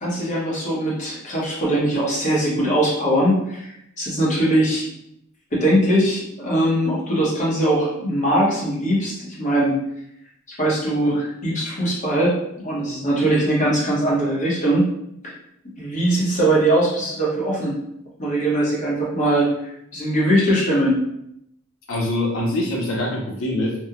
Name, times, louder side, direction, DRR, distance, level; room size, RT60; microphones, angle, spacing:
voice 1, 0.0-3.7 4.0-4.9 5.5-9.7 10.6-14.9 15.8-17.7 18.2-19.5 19.9-21.0, right 1 dB, 35° left, -5 dB, 0.8 m, -21 dB
voice 2, 21.9-23.8, left 1 dB, 70° left, -1 dB, 0.5 m, -24 dB
2.9 x 2.0 x 2.3 m, 0.78 s
head